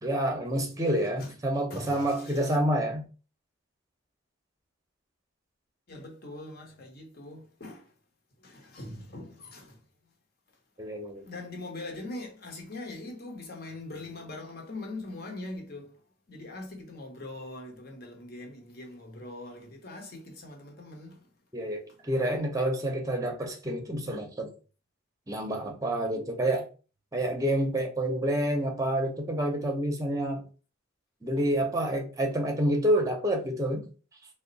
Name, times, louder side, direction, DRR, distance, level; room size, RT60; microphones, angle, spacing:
voice 1, 0.0-3.0 10.8-11.3 21.5-24.5 25.3-26.6 27.1-30.4 31.2-33.9, right 1 dB, 15° right, 0.7 m, -28 dB
voice 2, 1.7-2.6 5.9-7.9 8.4-9.8 11.2-16.0 16.3-21.3, left 2 dB, 50° left, 0.9 m, -42 dB
3.5 x 2.1 x 3.9 m
head